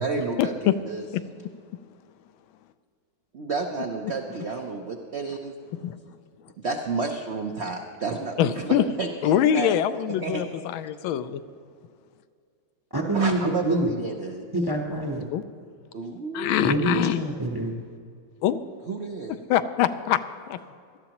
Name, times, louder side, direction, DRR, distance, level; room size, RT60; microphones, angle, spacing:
voice 1, 0.0-1.1 3.3-5.5 6.6-9.7 10.2-10.4 13.1-14.5 15.9-16.9 18.9-19.4, right 4 dB, 70° right, 3 dB, 0.6 m, -31 dB
voice 2, 8.4-8.8 9.2-11.4 15.3-15.4 16.3-17.2 18.4-18.6 19.5-20.2 20.5-20.6, left 10 dB, 85° left, 12 dB, 1.4 m, -23 dB
voice 3, 12.9-13.9 14.5-15.2 16.6-17.7, right 1 dB, 25° right, 1 dB, 0.5 m, -25 dB
18.0 x 12.5 x 2.9 m, 2.3 s
omnidirectional pair, 2.2 m